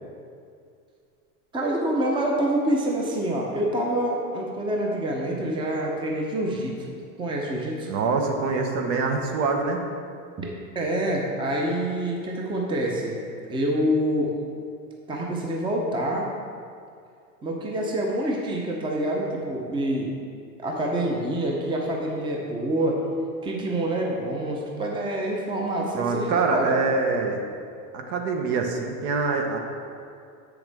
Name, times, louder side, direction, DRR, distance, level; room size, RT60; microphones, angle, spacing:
voice 1, 1.5-7.9 10.4-10.5 10.7-13.2 13.5-14.3 15.1-16.3 17.4-20.1 20.6-23.0 23.4-26.7, right 1 dB, 10° right, -1 dB, 0.8 m, -26 dB
voice 2, 7.9-9.9 25.9-27.4 27.9-29.6, right 4 dB, 55° right, 3 dB, 1.1 m, -25 dB
7.7 x 6.9 x 3.5 m, 2.4 s
supercardioid pair, 125°, 46 cm